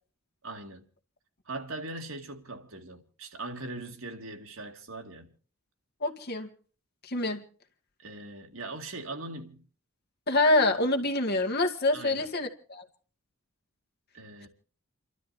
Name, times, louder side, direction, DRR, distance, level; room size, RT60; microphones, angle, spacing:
voice 1, 0.4-0.9 1.5-5.3 8.0-9.6 11.9-12.3 14.1-14.5, right 2 dB, 65° right, 2.3 m, -40 dB
voice 2, 6.0-6.5 7.0-7.4 10.3-12.9, left 2 dB, 50° left, 2.1 m, -26 dB
29.5 x 12.5 x 2.7 m
head